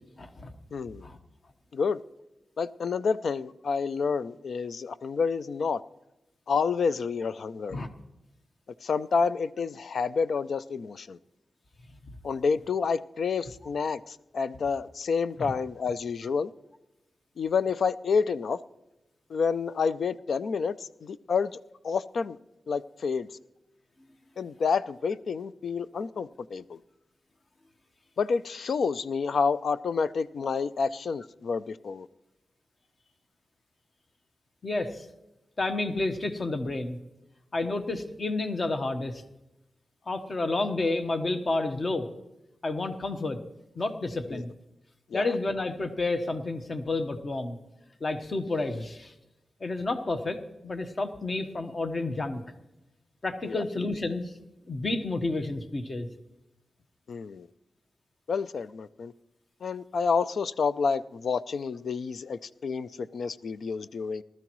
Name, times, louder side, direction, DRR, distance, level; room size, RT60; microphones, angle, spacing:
voice 1, 0.2-0.5 1.0-1.2 7.7-7.9 12.0-12.1 15.4-15.5 34.6-35.1 35.6-37.0 37.5-39.2 40.1-42.1 42.6-43.4 43.7-44.5 45.1-47.6 48.0-49.1 49.6-52.4 53.2-54.3 54.7-56.1, left 2 dB, 40° left, 1.2 m, -30 dB
voice 2, 0.7-1.1 1.7-2.0 2.6-5.8 6.5-7.8 8.8-11.2 12.2-16.5 17.4-18.6 19.3-21.6 21.8-22.4 22.7-23.3 24.4-26.8 28.2-32.1 44.3-44.4 45.1-45.2 53.5-53.6 57.1-57.5 58.3-59.1 59.6-64.2, left 5 dB, 75° left, 0.4 m, -29 dB
19.5 x 13.0 x 3.1 m
wide cardioid pair, 95°, 0 cm